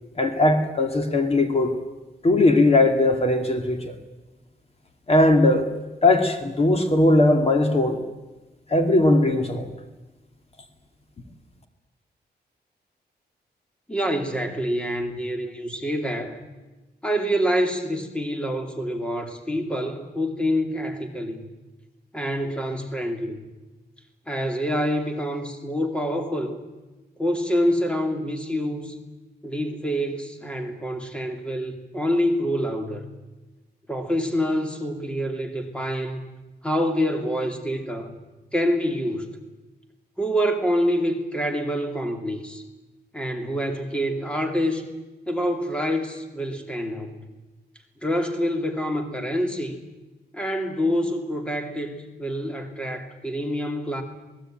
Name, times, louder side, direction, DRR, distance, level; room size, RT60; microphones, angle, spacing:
voice 1, 0.2-1.7 2.2-3.9 5.1-5.7 6.0-8.0 8.7-9.7, left 2 dB, 35° left, 6 dB, 2.4 m, -19 dB
voice 2, 13.9-16.4 17.0-21.5 22.1-23.4 24.3-26.6 27.2-29.0 29.4-33.1 33.9-36.2 36.6-38.2 38.5-39.4 40.2-42.6 43.1-44.9 45.3-47.2 48.0-49.8 50.3-54.0, equal, 5° left, 5 dB, 2.7 m, -26 dB
27.0 x 19.5 x 9.0 m, 1.1 s
wide cardioid pair, 155°, 17 cm